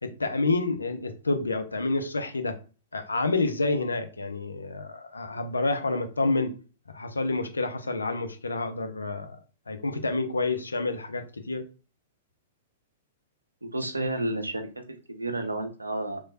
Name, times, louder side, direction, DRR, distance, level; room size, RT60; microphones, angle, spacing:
voice 1, 0.0-2.6 2.9-6.5 6.9-9.4 9.7-11.6, left 3 dB, 80° left, 7 dB, 0.4 m, -28 dB
voice 2, 13.6-16.2, right 2 dB, 85° right, 6 dB, 0.5 m, -31 dB
3.1 x 2.2 x 2.6 m, 0.35 s
figure-of-eight pair, 105°, 0 cm